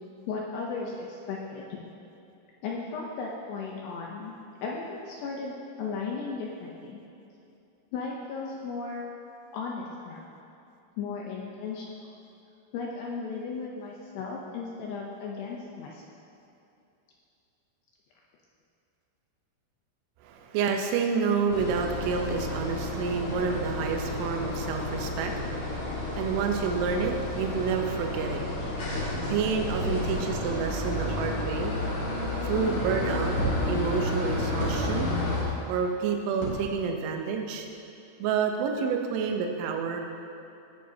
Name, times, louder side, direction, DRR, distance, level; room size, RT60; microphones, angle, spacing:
voice 1, 0.3-1.8 2.6-7.0 7.9-9.1 9.5-10.2 11.0-11.9 12.7-16.0, left 4 dB, 80° left, -2 dB, 2.4 m, -36 dB
voice 2, 20.2-28.4 29.3-31.7 32.4-33.4 33.7-35.1 35.7-37.7 38.2-40.0, right 6 dB, 80° right, 3 dB, 3.2 m, -29 dB
sound 1, 21.5-35.4, left 2 dB, 50° left, 2.1 m, -31 dB
sound 2, 33.4-33.6 34.6-35.2 36.4-37.0 37.5-37.6, right 2 dB, 35° left, 2.8 m, -33 dB
17.0 x 9.9 x 2.8 m, 2.7 s
omnidirectional pair, 5.8 m